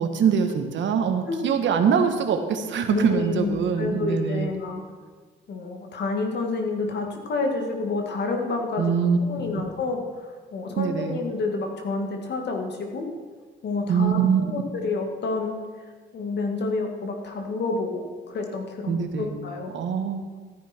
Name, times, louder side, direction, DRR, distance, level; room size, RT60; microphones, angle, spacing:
voice 1, 0.0-4.5 8.8-9.2 10.8-11.2 13.9-14.4 18.9-19.4 19.7-20.2, right 7 dB, 70° right, 6 dB, 1.4 m, -23 dB
voice 2, 2.9-4.8 5.5-8.9 9.2-13.1 13.6-15.5 16.1-19.7, left 3 dB, 60° left, 3 dB, 2.1 m, -29 dB
14.0 x 10.0 x 4.5 m, 1.5 s
cardioid pair, 90°, 20 cm